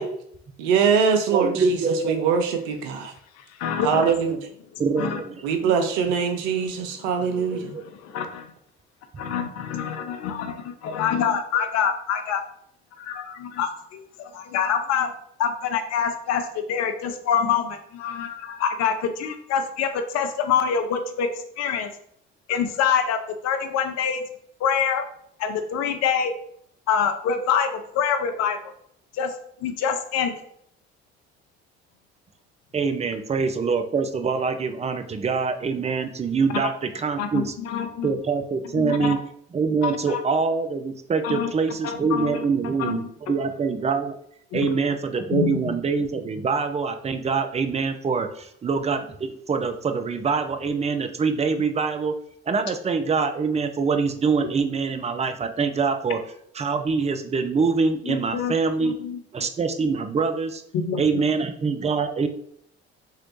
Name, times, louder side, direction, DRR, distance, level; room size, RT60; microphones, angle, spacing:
voice 1, 0.6-1.8 2.0-3.1 3.8-4.4 5.4-7.7, right 6 dB, 80° right, 6 dB, 0.6 m, -22 dB
voice 2, 1.3-2.2 4.8-5.7 7.2-7.8 9.1-9.3 32.7-37.5 38.0-39.2 39.5-44.2 44.5-52.1 52.5-56.2 56.5-59.0 59.3-60.6 61.0-62.3, right 5 dB, 20° right, 8 dB, 0.4 m, -25 dB
voice 3, 3.4-4.1 5.0-5.2 7.5-8.5 9.2-12.4 13.0-15.1 15.4-21.3 21.6-21.9 22.5-24.2 24.6-25.0 25.4-26.3 26.9-28.6 29.1-29.3 29.6-30.3 37.2-38.1 38.7-39.1 39.8-40.2 41.2-41.5 41.8-42.5 42.8-43.0 44.5-44.7 45.3-45.6 58.0-58.5 58.8-59.2 60.8-61.2, left 7 dB, 55° left, 7 dB, 0.5 m, -26 dB
3.0 x 2.8 x 3.0 m, 0.69 s
hypercardioid pair, 55°, 33 cm